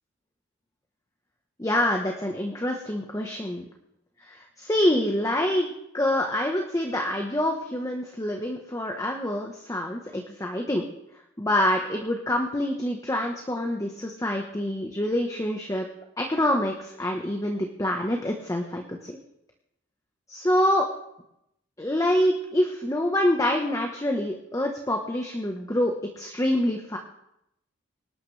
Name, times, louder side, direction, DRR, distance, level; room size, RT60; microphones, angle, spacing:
voice 1, 1.6-3.6 4.3-10.9 11.4-15.9 16.2-19.1 20.3-20.9 21.8-27.0, left 1 dB, 15° left, 2 dB, 1.3 m, -26 dB
25.5 x 12.0 x 3.4 m, 0.79 s
head